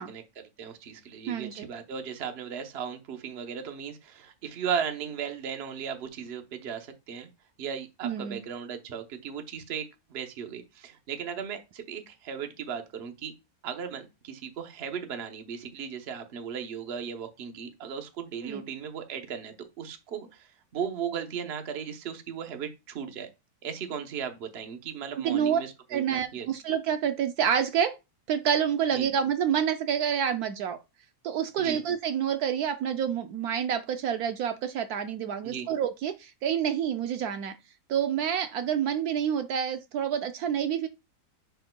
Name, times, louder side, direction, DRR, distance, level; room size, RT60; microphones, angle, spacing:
voice 1, 0.0-7.3 7.6-13.3 13.6-23.3 23.6-26.5 28.9-29.1 31.6-31.8 35.4-35.7, right 7 dB, 50° right, 1.0 m, -36 dB
voice 2, 1.3-1.7 8.0-8.4 18.4-18.6 25.2-25.6 25.9-28.0 28.3-30.8 31.2-37.5 37.9-40.9, right 8 dB, 75° right, 1.0 m, -28 dB
10.0 x 4.5 x 2.2 m
omnidirectional pair, 1.7 m